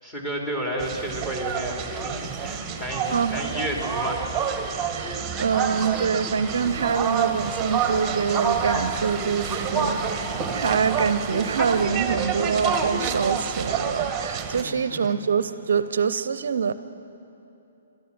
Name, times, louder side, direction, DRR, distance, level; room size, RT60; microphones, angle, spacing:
voice 1, 0.0-4.3 14.6-15.1, equal, 15° left, -2 dB, 3.7 m, -31 dB
sound 1, 0.8-14.6, right 6 dB, 15° right, 1.4 m, -28 dB
sound 2, 1.4-16.1, equal, 90° left, 4.8 m, -48 dB
voice 2, 4.9-16.7, right 6 dB, 60° right, 14 dB, 0.7 m, -25 dB
sound 3, 6.5-11.8, left 1 dB, 50° left, 6.6 m, -42 dB
29.0 x 13.0 x 7.6 m, 3.0 s
figure-of-eight pair, 125°, 0 cm